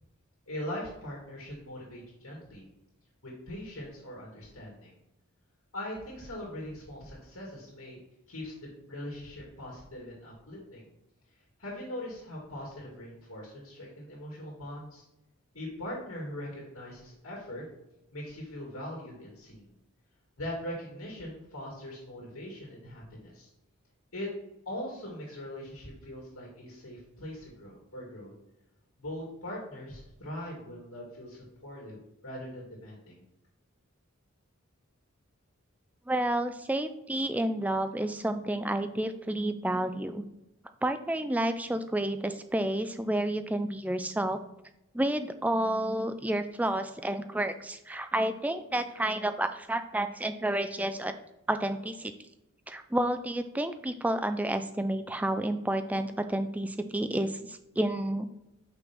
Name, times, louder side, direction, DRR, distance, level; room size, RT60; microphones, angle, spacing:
voice 1, 0.5-2.6 3.2-4.9 5.7-8.0 8.3-10.8 11.6-15.0 15.5-17.6 18.1-19.7 20.4-23.5 24.1-24.3 24.7-28.3 29.0-32.0 32.2-33.2, left 1 dB, 80° left, -3 dB, 2.2 m, -41 dB
voice 2, 36.1-40.2 40.8-44.4 44.9-51.1 51.5-52.1 52.7-58.3, right 1 dB, 5° right, 9 dB, 0.4 m, -30 dB
5.8 x 5.8 x 3.5 m, 0.91 s
head